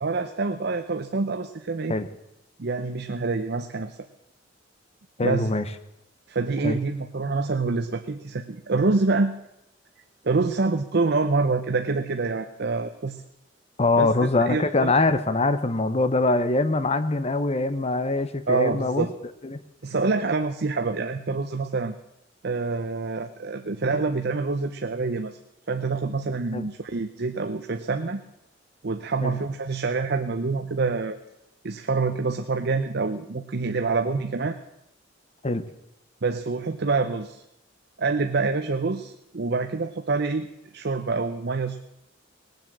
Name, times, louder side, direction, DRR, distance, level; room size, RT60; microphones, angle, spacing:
voice 1, 0.0-1.9 2.6-4.0 5.2-5.5 6.3-9.3 10.2-13.2 14.0-14.1 14.4-14.9 18.5-19.1 19.8-21.9 22.4-25.4 25.7-28.2 28.8-31.2 31.6-34.6 36.2-37.4 38.0-40.5 40.7-41.8, right 3 dB, 60° right, 7 dB, 0.7 m, -26 dB
voice 2, 5.2-5.6 6.6-6.8 13.8-19.1 19.4-19.6 26.5-26.7 29.2-29.4 35.4-35.6, left 2 dB, 35° left, 11 dB, 0.9 m, -23 dB
19.5 x 7.9 x 7.4 m, 0.89 s
head